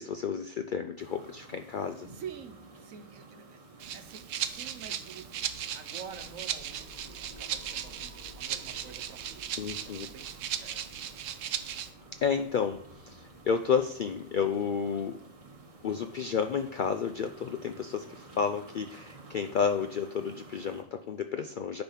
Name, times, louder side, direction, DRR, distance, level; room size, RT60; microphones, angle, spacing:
voice 1, 0.0-2.1 9.6-10.1 12.2-15.2 15.8-21.8, left 6 dB, 75° left, 8 dB, 0.4 m, -31 dB
sound 1, 1.0-20.8, right 2 dB, 30° right, 1.0 m, -53 dB
voice 2, 2.1-3.6 3.9-10.9, right 7 dB, 90° right, 8 dB, 1.3 m, -48 dB
Rattle (instrument), 3.8-11.9, right 9 dB, 75° right, 1.0 m, -37 dB
sound 2, 6.0-17.1, left 1 dB, 15° left, 3.4 m, -56 dB
10.5 x 4.0 x 5.7 m, 0.67 s
omnidirectional pair, 1.4 m